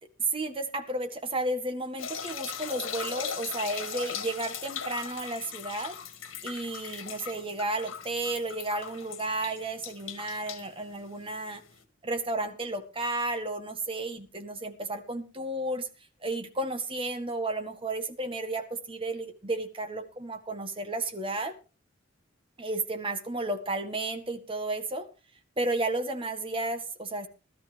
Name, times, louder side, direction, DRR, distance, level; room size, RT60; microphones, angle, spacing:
voice 1, 0.3-6.0 6.4-11.6 12.0-15.9 16.2-21.5 22.6-25.1 25.6-27.3, right 2 dB, 25° right, 7 dB, 1.8 m, -33 dB
sound 1, 2.0-11.8, left 7 dB, 85° left, 2.0 m, -39 dB
17.0 x 13.0 x 3.5 m, 0.32 s
head